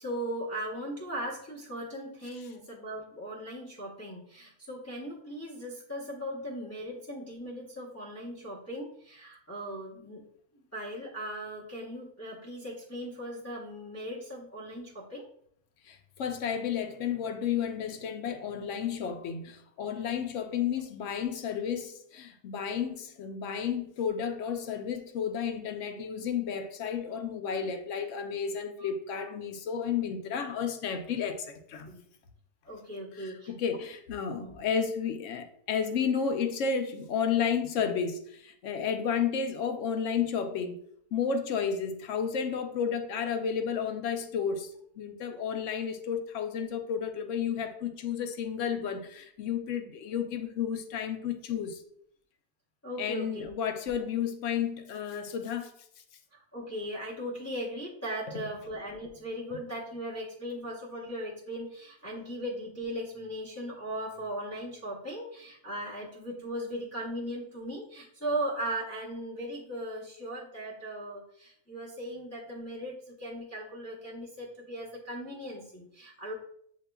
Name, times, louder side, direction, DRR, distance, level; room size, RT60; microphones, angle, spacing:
voice 1, 0.0-10.2 10.7-15.2 20.7-20.8 28.8-28.9 31.9-32.0 32.7-33.5 34.3-34.6 52.8-53.4 56.3-76.3, equal, 15° left, 0.8 m, -38 dB
voice 2, 15.9-31.9 33.2-40.8 41.1-51.8 53.0-55.7, left 7 dB, 70° left, 0.9 m, -32 dB
7.9 x 2.9 x 2.2 m
omnidirectional pair, 1.4 m